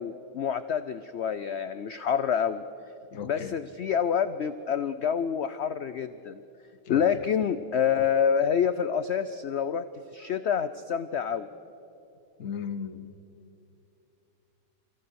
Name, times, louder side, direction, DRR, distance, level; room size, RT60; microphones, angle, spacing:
voice 1, 0.0-2.6 3.2-6.4 6.9-9.8 10.1-11.5, left 7 dB, 80° left, 12 dB, 0.6 m, -27 dB
voice 2, 3.1-3.5 6.9-7.0 12.4-13.1, left 7 dB, 55° left, 11 dB, 1.2 m, -36 dB
27.5 x 16.0 x 6.3 m, 2.8 s
omnidirectional pair, 1.8 m